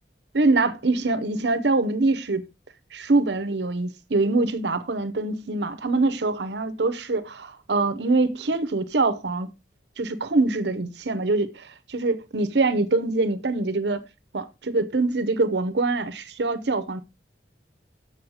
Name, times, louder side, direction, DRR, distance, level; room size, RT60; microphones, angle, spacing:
voice 1, 0.3-2.4 2.9-9.5 10.0-14.0 14.3-17.0, right 3 dB, 70° right, 0.7 m, -24 dB
6.8 x 6.4 x 4.8 m
head